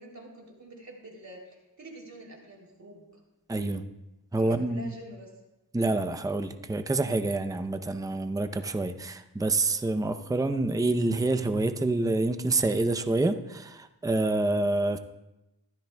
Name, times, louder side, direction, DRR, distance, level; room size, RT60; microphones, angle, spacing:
voice 1, 0.0-3.1 4.4-5.3, right 1 dB, 45° right, -1 dB, 3.2 m, -46 dB
voice 2, 3.5-3.8 4.3-4.9 5.7-15.0, right 2 dB, 10° right, 9 dB, 0.6 m, -27 dB
15.5 x 13.0 x 2.3 m, 0.97 s
wide cardioid pair, 70°, 38 cm